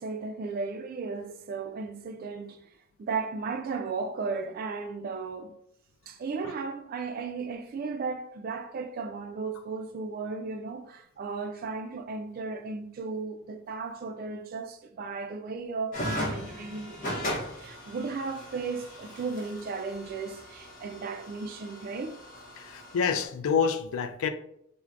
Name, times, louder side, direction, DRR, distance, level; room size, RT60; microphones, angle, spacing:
voice 1, 0.0-2.6 3.0-5.6 6.1-22.2, right 4 dB, 45° right, 0.3 m, -35 dB
sound 1, 15.9-23.3, equal, 40° left, 0.8 m, -38 dB
voice 2, 22.6-24.3, left 6 dB, 80° left, 0.3 m, -27 dB
4.5 x 2.1 x 2.5 m
head